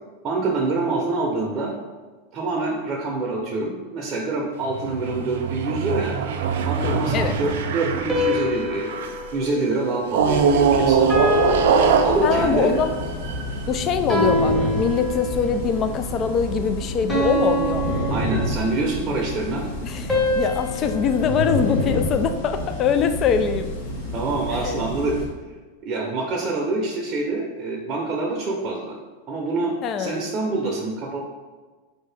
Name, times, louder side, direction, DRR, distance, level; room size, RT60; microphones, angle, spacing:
voice 1, 0.2-1.8 2.3-6.2 6.7-11.2 12.0-12.7 18.1-19.7 24.1-25.2 25.8-29.0 29.3-31.2, right 3 dB, 35° right, -2 dB, 0.7 m, -26 dB
sound 1, 4.6-9.3 10.1-13.7, right 6 dB, 75° right, 0.4 m, -22 dB
sound 2, 8.1-10.6 11.1-12.8 14.1-15.6 17.1-19.0 20.1-22.5, left 1 dB, 10° left, 0.9 m, -26 dB
sound 3, 10.2-25.3, left 1 dB, 70° left, 1.1 m, -30 dB
voice 2, 12.2-12.9 13.7-17.9 19.8-23.7 24.5-24.8 29.8-30.3, left 7 dB, 35° left, 9 dB, 0.3 m, -23 dB
4.1 x 2.7 x 3.4 m, 1.3 s
supercardioid pair, 130°, 0 cm